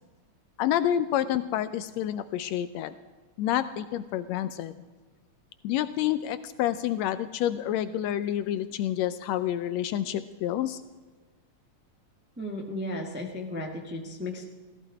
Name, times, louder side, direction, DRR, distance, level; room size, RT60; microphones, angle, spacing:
voice 1, 0.6-2.9 3.4-4.7 5.6-10.8, left 11 dB, 80° left, 12 dB, 1.7 m, -28 dB
voice 2, 12.4-14.5, left 1 dB, 10° right, 0 dB, 0.7 m, -35 dB
16.5 x 14.5 x 4.9 m, 1.3 s
omnidirectional pair, 3.3 m